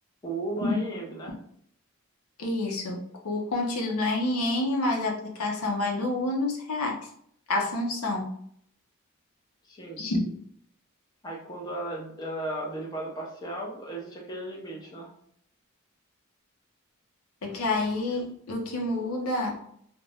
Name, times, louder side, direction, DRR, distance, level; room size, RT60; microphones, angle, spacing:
voice 1, 0.2-1.3 9.6-10.0 11.2-15.1, right 1 dB, 20° left, -3 dB, 0.6 m, -35 dB
voice 2, 2.4-7.0 7.5-8.3 10.0-10.2 17.4-19.6, left 2 dB, 85° left, 1 dB, 0.6 m, -28 dB
2.5 x 2.1 x 3.3 m, 0.66 s
head